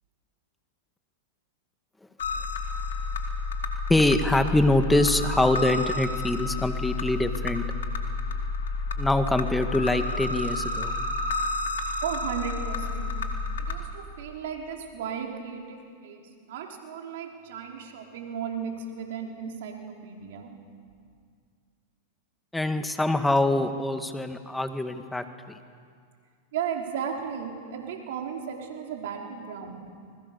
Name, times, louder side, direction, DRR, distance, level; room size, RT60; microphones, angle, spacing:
sound 1, 2.2-13.8, left 3 dB, 80° left, 2.6 m, -30 dB
voice 1, 3.9-7.7 9.0-10.9 22.5-25.2, left 2 dB, 5° left, 8 dB, 1.9 m, -24 dB
voice 2, 12.0-13.2 13.6-20.5 26.5-29.8, right 7 dB, 70° right, 1 dB, 4.4 m, -35 dB
28.0 x 21.0 x 7.1 m, 2.2 s
hypercardioid pair, 110°, 0 cm